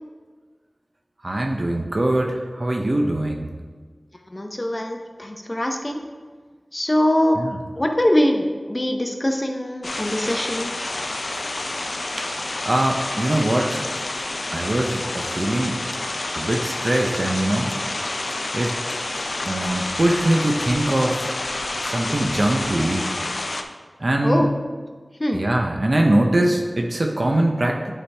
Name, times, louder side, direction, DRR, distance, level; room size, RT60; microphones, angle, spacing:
voice 1, 1.2-3.5 7.4-7.6 12.2-12.3 12.7-13.8 14.5-15.8 16.3-17.7 18.5-18.7 19.4-21.4 21.8-23.1 24.0-24.5 25.3-27.9, right 1 dB, 55° right, 2 dB, 0.7 m, -22 dB
voice 2, 4.3-6.0 6.7-7.4 7.8-10.7 24.2-24.5 25.2-25.4, left 1 dB, 30° left, 3 dB, 0.8 m, -22 dB
sound 1, 9.8-23.6, left 2 dB, 70° left, 0.5 m, -29 dB
9.9 x 4.9 x 3.4 m, 1.5 s
wide cardioid pair, 55°, 0 cm